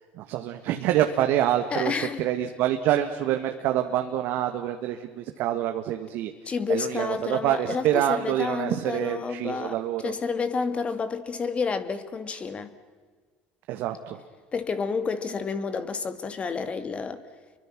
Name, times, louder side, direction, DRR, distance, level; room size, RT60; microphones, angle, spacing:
voice 1, 0.1-6.3 6.7-10.1 13.7-14.2, right 12 dB, 65° right, 6 dB, 1.6 m, -26 dB
voice 2, 1.7-2.3 6.5-9.8 10.0-12.7 14.5-17.2, left 5 dB, 30° left, 10 dB, 2.2 m, -30 dB
29.0 x 23.5 x 6.1 m, 1.5 s
supercardioid pair, 85°, 4 cm